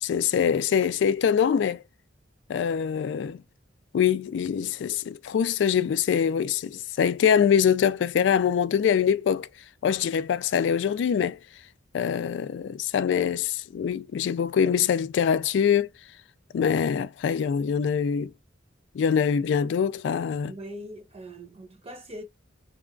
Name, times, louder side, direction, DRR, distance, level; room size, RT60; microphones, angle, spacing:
voice 1, 0.0-1.8 2.5-3.4 3.9-9.5 9.8-11.4 11.9-15.9 16.5-18.3 18.9-20.5, left 7 dB, 65° left, 0.3 m, -24 dB
voice 2, 20.5-22.2, equal, 30° right, 0.8 m, -41 dB
2.9 x 2.3 x 2.5 m
head